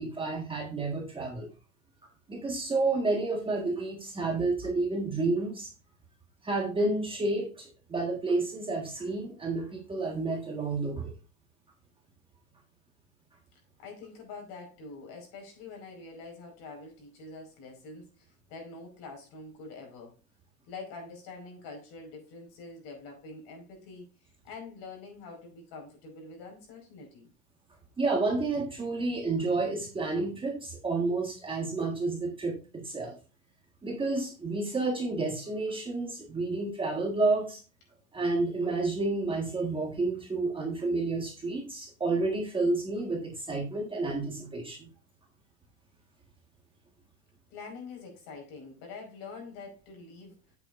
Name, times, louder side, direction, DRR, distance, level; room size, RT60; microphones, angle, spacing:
voice 1, 0.0-1.5 2.3-5.7 6.4-11.1 28.0-33.2 33.8-37.6 38.1-44.9, right 3 dB, 10° right, 0 dB, 1.5 m, -30 dB
voice 2, 13.8-20.2 20.7-24.1 24.4-27.3 47.5-50.4, left 4 dB, 50° left, 2 dB, 5.0 m, -45 dB
8.8 x 8.4 x 2.5 m, 0.33 s
hypercardioid pair, 120°, 43 cm